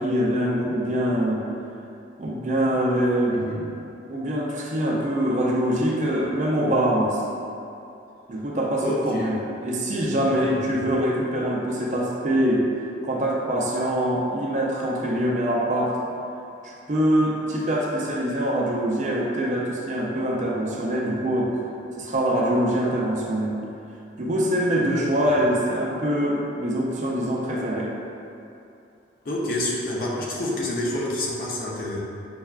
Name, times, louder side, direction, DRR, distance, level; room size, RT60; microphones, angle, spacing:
voice 1, 0.0-1.4 2.2-3.8 4.1-7.2 8.3-9.3 9.6-12.7 13.0-16.0 16.6-21.5 22.0-23.6 24.2-27.9, right 1 dB, 40° right, -3 dB, 0.4 m, -24 dB
voice 2, 8.8-9.3 10.3-10.9 24.9-25.0 29.2-32.0, left 1 dB, 50° left, -4 dB, 0.5 m, -28 dB
5.3 x 2.3 x 2.3 m, 2.7 s
head